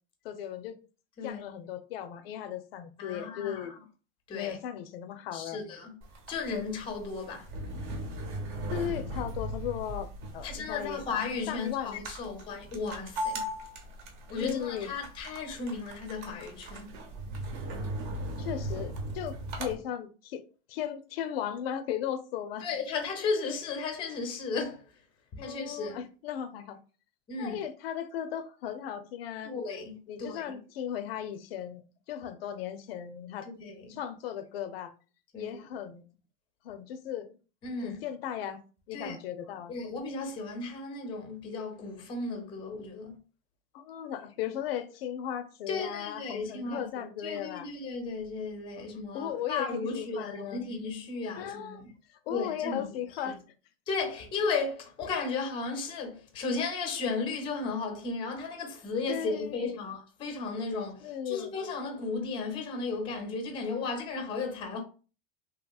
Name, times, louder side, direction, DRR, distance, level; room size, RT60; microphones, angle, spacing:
voice 1, 0.2-0.8 1.2-3.7 4.3-5.6 8.7-11.0 11.5-12.4 14.4-14.9 18.4-20.4 20.7-22.7 25.4-26.8 27.4-29.5 30.1-33.5 33.9-34.9 35.4-36.0 36.6-37.4 37.8-38.6 38.9-39.7 43.7-47.7 48.8-48.9 49.1-50.7 51.4-51.8 52.1-53.4 59.1-59.8 61.0-61.5, left 9 dB, 85° left, 0.5 m, -37 dB
voice 2, 3.0-3.7 4.3-4.6 5.3-5.9 6.3-7.5 10.4-13.5 14.3-16.9 17.7-17.8 22.6-24.8 25.3-26.0 27.3-27.6 29.4-30.6 33.6-33.8 35.3-35.6 37.6-38.0 38.9-39.2 39.7-43.2 45.7-46.9 47.2-51.9 52.3-52.9 53.9-64.8, left 4 dB, 15° left, 0.5 m, -35 dB
sound 1, 6.0-19.7, right 1 dB, 55° right, 0.9 m, -38 dB
2.8 x 2.8 x 2.3 m
supercardioid pair, 155°, 29 cm